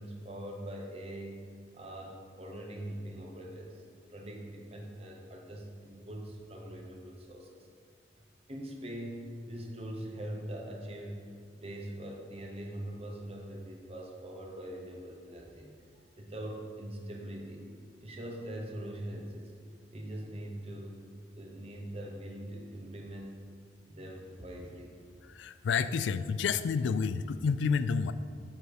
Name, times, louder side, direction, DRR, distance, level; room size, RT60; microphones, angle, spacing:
voice 1, 0.0-1.4 1.7-3.8 4.1-7.7 8.5-11.3 11.5-15.7 16.2-17.7 18.0-19.5 19.9-21.0 21.4-23.4 23.9-25.0, right 1 dB, 35° right, 1 dB, 1.1 m, -42 dB
voice 2, 25.3-28.1, left 5 dB, 90° left, 13 dB, 0.3 m, -29 dB
7.5 x 6.3 x 4.8 m, 2.1 s
head